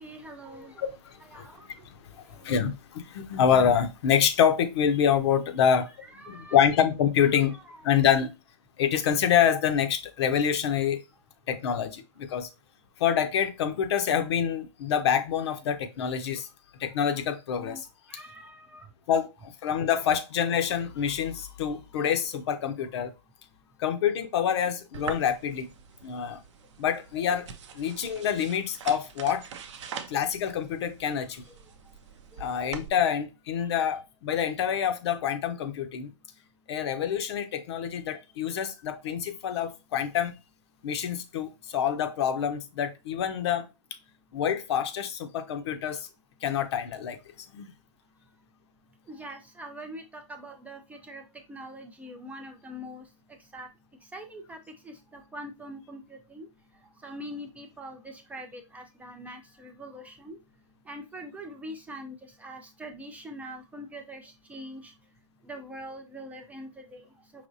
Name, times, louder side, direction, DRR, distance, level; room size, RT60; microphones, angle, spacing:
voice 1, 0.0-0.7 1.2-1.7 6.1-6.6 7.3-7.8 17.6-17.8 18.1-18.9 49.1-51.2 51.5-53.0 53.5-53.7 54.1-54.6 55.3-56.0 56.3-56.5 57.0-60.4 60.9-62.1 62.4-64.8 65.5-67.0, equal, 10° right, 0.4 m, -43 dB
voice 2, 0.8-1.5 1.8-5.9 6.3-7.6 7.8-8.3 8.8-11.0 11.5-12.5 13.0-16.5 16.8-17.9 19.1-23.1 23.8-25.7 26.0-26.4 26.8-27.5 27.7-29.5 30.1-31.4 32.4-36.1 36.7-40.3 40.8-43.7 44.3-46.1 46.4-47.2 47.5-47.7, left 8 dB, 55° left, 0.7 m, -26 dB
sound 1, 24.9-32.9, right 7 dB, 60° right, 0.6 m, -43 dB
5.0 x 3.0 x 2.6 m
hypercardioid pair, 120°, 17 cm